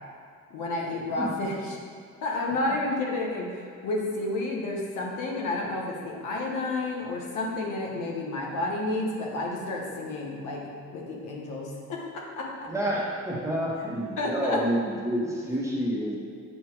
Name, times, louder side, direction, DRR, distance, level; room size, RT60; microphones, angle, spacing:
voice 1, 0.5-1.8 2.2-12.7 13.8-13.9 14.2-14.6, left 2 dB, 85° left, -2 dB, 1.1 m, -31 dB
voice 2, 12.7-16.2, equal, 10° right, -4 dB, 1.3 m, -29 dB
7.8 x 2.9 x 4.7 m, 2.3 s
cardioid pair, 90°, 30 cm